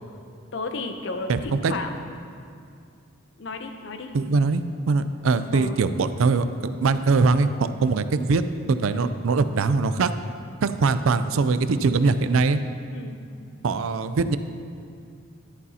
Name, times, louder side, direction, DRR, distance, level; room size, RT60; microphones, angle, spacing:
voice 1, 0.5-1.9 3.4-4.1 5.5-5.8 8.9-9.2 12.9-13.2, left 3 dB, 60° left, 6 dB, 0.7 m, -33 dB
voice 2, 1.3-1.7 4.1-8.4 8.7-10.1 10.6-12.6 13.6-14.4, right 4 dB, 80° right, 11 dB, 0.4 m, -22 dB
11.0 x 11.0 x 2.8 m, 2.3 s
head